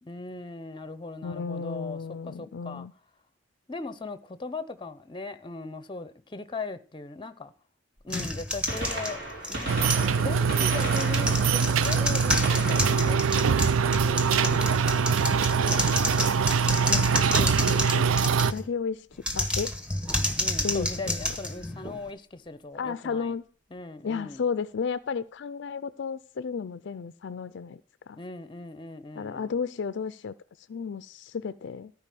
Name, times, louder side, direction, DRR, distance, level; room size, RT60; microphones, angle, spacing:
voice 1, 0.0-2.9 3.7-7.5 8.0-9.2 9.5-13.6 14.0-15.0 15.6-16.2 20.4-23.3 23.7-24.4 28.2-29.5, left 3 dB, 25° left, 0.7 m, -39 dB
voice 2, 1.2-2.9 16.9-18.1 18.4-19.1 19.3-19.7 20.6-21.1 22.7-23.4 24.0-27.8 28.1-28.2 29.2-31.9, left 5 dB, 60° left, 0.4 m, -33 dB
Gunshot gunfire, 8.0-8.1 8.5-14.4 16.3-16.5 17.5-17.6 19.2-19.3 20.7-20.8 20.9-21.0, right 1 dB, 60° right, 4.1 m, -36 dB
sound 1, 8.1-10.2 10.7-18.7 19.2-22.1, left 1 dB, 5° right, 1.2 m, -30 dB
sound 2, 9.7-18.5, right 6 dB, 75° right, 0.4 m, -23 dB
13.5 x 4.9 x 7.6 m
head